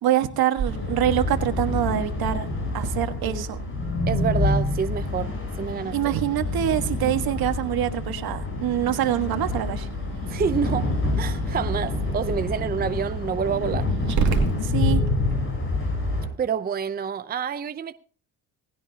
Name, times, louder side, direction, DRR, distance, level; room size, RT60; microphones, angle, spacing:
voice 1, 0.0-2.5 2.7-3.6 5.9-9.9 14.6-15.0, right 12 dB, 70° right, 1.6 m, -25 dB
Growling, 0.5-15.3, right 6 dB, 50° right, 2.3 m, -35 dB
sound 1, 0.7-16.3, left 2 dB, 35° left, 7.9 m, -27 dB
voice 2, 4.1-6.0 10.3-10.9 11.2-14.2 16.4-17.9, right 6 dB, 25° right, 0.6 m, -28 dB
19.0 x 16.0 x 2.8 m
cardioid pair, 115°, 38 cm